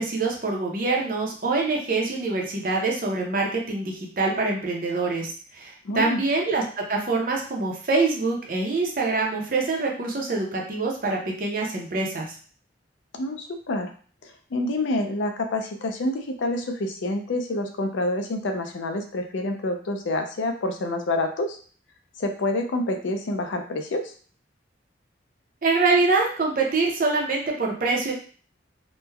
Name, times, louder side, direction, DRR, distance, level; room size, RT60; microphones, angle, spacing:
voice 1, 0.0-12.3 25.6-28.1, right 3 dB, 45° right, 0 dB, 0.6 m, -25 dB
voice 2, 5.8-6.2 13.1-13.9 14.2-21.6 22.2-24.1, left 2 dB, 80° left, 5 dB, 0.4 m, -27 dB
3.1 x 2.1 x 2.2 m, 0.42 s
head